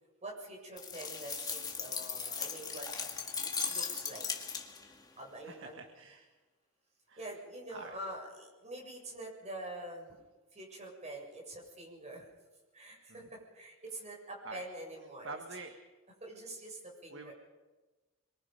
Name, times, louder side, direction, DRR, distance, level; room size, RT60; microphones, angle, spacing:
voice 1, 0.2-2.8 3.7-4.3 5.2-5.8 7.2-10.1 10.5-12.2 12.7-15.4 16.2-17.3, right 1 dB, 35° right, -1 dB, 7.3 m, -45 dB
sound 1, 0.8-4.9, left 5 dB, 20° left, 2.1 m, -38 dB
voice 2, 5.4-6.3 7.1-7.3 7.7-8.0 13.1-13.2 14.4-14.6 15.2-15.8 17.1-17.3, right 3 dB, 65° right, 5 dB, 1.6 m, -46 dB
26.5 x 23.5 x 5.4 m, 1.2 s
head